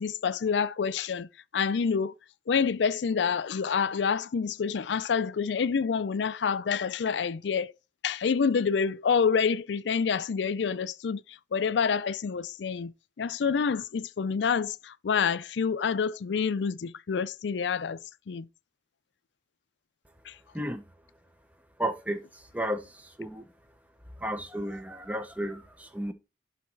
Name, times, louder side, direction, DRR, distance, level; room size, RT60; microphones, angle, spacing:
voice 1, 0.0-2.1 2.5-7.7 8.0-18.0 18.3-18.5 20.3-20.4, left 6 dB, 90° left, 0.4 m, -28 dB
voice 2, 20.5-20.8 21.8-23.5 24.2-26.1, right 1 dB, 10° right, 0.8 m, -33 dB
11.5 x 4.1 x 4.7 m
head